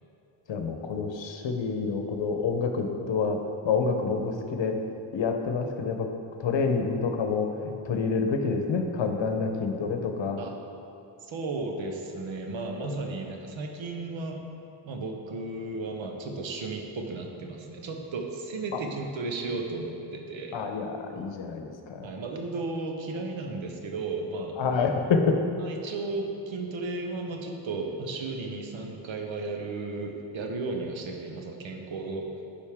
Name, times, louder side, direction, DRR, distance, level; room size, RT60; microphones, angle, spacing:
voice 1, 0.5-3.4 3.6-4.8 5.1-6.1 6.4-10.4 12.9-13.0 20.5-22.1 24.6-25.4, left 4 dB, 65° left, 5 dB, 0.9 m, -28 dB
voice 2, 11.2-14.5 14.9-20.6 22.0-24.6 25.6-32.3, right 3 dB, 70° right, 2 dB, 1.1 m, -34 dB
10.0 x 5.2 x 3.6 m, 2.7 s
cardioid pair, 50°, 48 cm